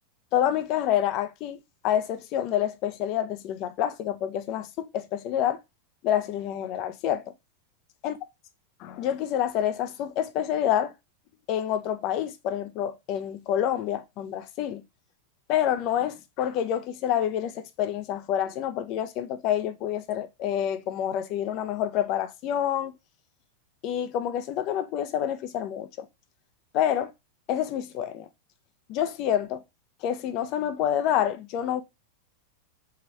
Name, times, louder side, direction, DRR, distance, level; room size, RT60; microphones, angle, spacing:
voice 1, 0.3-1.6 1.8-5.6 6.0-7.2 8.0-8.1 8.8-10.9 11.5-14.8 15.5-22.9 23.8-26.1 26.7-27.1 27.5-28.3 28.9-29.6 30.0-31.8, left 10 dB, 40° left, 0.5 m, -27 dB
3.0 x 2.9 x 3.3 m
figure-of-eight pair, 90°, 0 cm